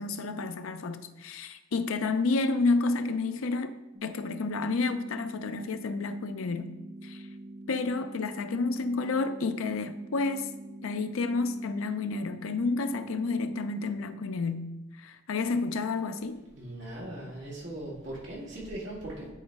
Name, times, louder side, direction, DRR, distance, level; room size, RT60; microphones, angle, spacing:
voice 1, 0.0-3.7 4.0-6.8 7.0-7.3 7.7-10.5 10.8-16.4, left 3 dB, 90° left, 0.5 m, -30 dB
sound 1, 3.9-14.0, right 1 dB, 30° right, 1.6 m, -45 dB
voice 2, 16.5-19.3, right 1 dB, 60° right, 2.2 m, -39 dB
9.9 x 4.0 x 3.6 m
head